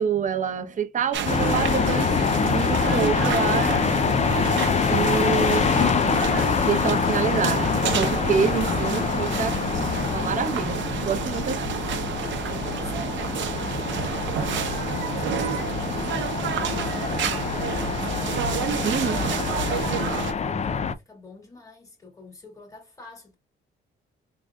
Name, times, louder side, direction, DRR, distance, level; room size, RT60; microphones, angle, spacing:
voice 1, 0.0-3.9 4.9-5.8 6.7-11.6 18.8-19.3, right 6 dB, 40° right, 0.8 m, -27 dB
sound 1, 1.1-20.3, right 7 dB, 70° right, 0.9 m, -29 dB
sound 2, 1.3-20.9, left 6 dB, 35° left, 0.5 m, -25 dB
voice 2, 11.5-11.8 12.4-18.7 19.7-23.4, left 3 dB, 15° left, 2.3 m, -47 dB
3.6 x 3.3 x 2.4 m
cardioid pair, 90°, 20 cm